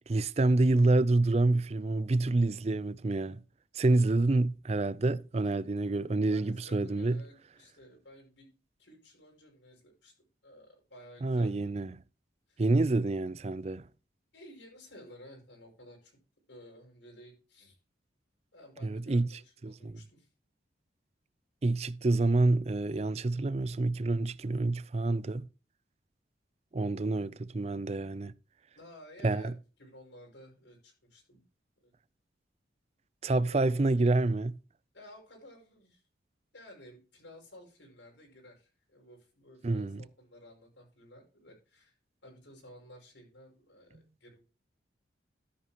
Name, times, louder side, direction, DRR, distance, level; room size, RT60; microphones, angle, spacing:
voice 1, 0.1-3.4 3.7-7.2 11.2-11.9 12.6-13.8 18.8-19.3 19.6-20.0 21.6-25.5 26.7-28.3 29.2-29.5 33.2-34.5 39.6-40.0, right 2 dB, 35° right, 0.4 m, -27 dB
voice 2, 6.3-8.5 8.8-10.1 10.4-11.7 12.5-12.7 14.3-16.2 16.5-17.8 18.5-20.3 28.7-29.5 29.8-31.4 31.8-31.9 33.5-33.7 34.9-36.0 36.5-41.9 42.2-44.4, left 1 dB, 80° left, 5.8 m, -54 dB
13.0 x 10.5 x 2.9 m
head